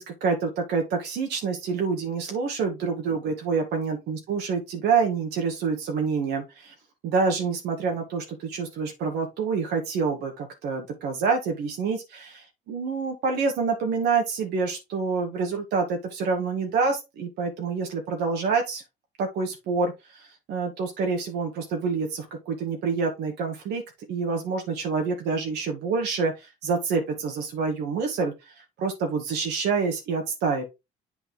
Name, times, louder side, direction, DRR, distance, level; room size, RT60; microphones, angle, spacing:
voice 1, 0.0-6.7 7.0-18.8 19.2-23.8 24.1-30.6, right 4 dB, 75° right, 2.0 m, -27 dB
8.1 x 4.1 x 3.9 m
cardioid pair, 110°, 17 cm